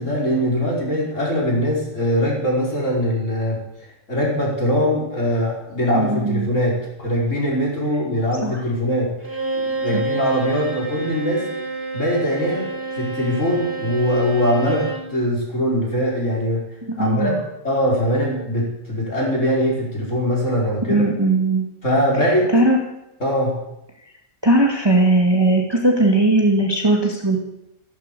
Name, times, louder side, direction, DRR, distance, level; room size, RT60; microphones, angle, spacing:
voice 1, 0.0-3.6 4.1-9.1 9.5-11.4 11.9-12.7 12.9-16.6 17.0-17.3 17.6-21.1 21.8-22.5 23.2-23.5, equal, 45° left, -3 dB, 5.4 m, -21 dB
voice 2, 5.9-6.5 8.4-8.6 9.9-10.0 17.0-17.4 20.9-21.6 22.1-22.8 24.4-27.4, right 2 dB, 15° right, 0 dB, 2.2 m, -18 dB
Bowed string instrument, 9.2-15.1, right 3 dB, 65° right, 7.0 m, -28 dB
14.5 x 13.0 x 7.0 m, 0.86 s
omnidirectional pair, 1.8 m